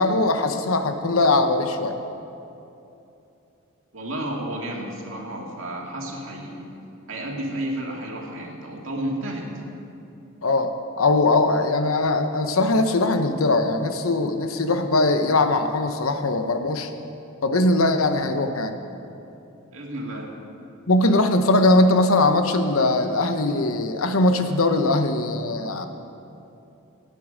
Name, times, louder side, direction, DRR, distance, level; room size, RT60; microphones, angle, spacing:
voice 1, 0.0-2.0 10.4-16.9 17.4-18.7 20.9-25.9, left 2 dB, 85° left, 7 dB, 1.0 m, -21 dB
voice 2, 3.9-6.7 7.1-9.5 19.7-20.3, right 1 dB, 65° right, -1 dB, 2.2 m, -31 dB
18.5 x 9.4 x 5.2 m, 2.8 s
head